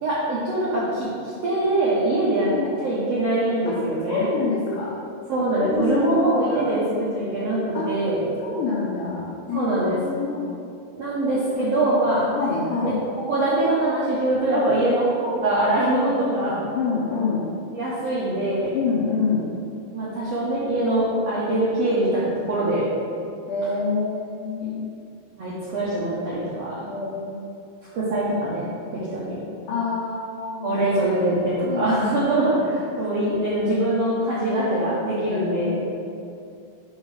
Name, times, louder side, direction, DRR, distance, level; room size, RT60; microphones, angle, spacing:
voice 1, 0.0-2.5 2.8-4.3 5.3-8.2 9.5-10.0 10.9-12.3 12.8-16.5 17.7-18.7 19.9-22.8 24.6-24.7 25.4-26.8 27.9-29.4 30.6-35.8, right 1 dB, 70° right, -8 dB, 1.4 m, -23 dB
voice 2, 2.4-2.7 4.1-4.9 5.6-6.7 7.7-7.9 8.4-10.5 12.4-13.0 14.5-14.8 16.7-17.5 18.7-19.5 23.5-24.8 26.9-27.4 29.7-30.8 31.6-32.6 35.3-35.8, left 4 dB, 75° left, -5 dB, 2.0 m, -27 dB
6.6 x 5.5 x 4.9 m, 2.5 s
omnidirectional pair, 4.4 m